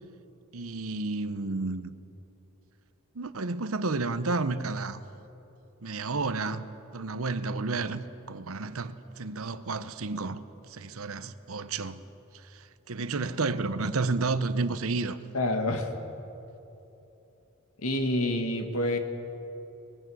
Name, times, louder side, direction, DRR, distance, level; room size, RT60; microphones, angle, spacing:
voice 1, 0.5-1.9 3.1-5.0 5.8-6.6 6.9-10.4 10.7-12.0 12.5-15.2, right 3 dB, 70° right, 0.9 m, -31 dB
voice 2, 15.3-15.9 17.8-19.0, left 1 dB, 80° left, 1.9 m, -27 dB
23.0 x 20.5 x 6.3 m
head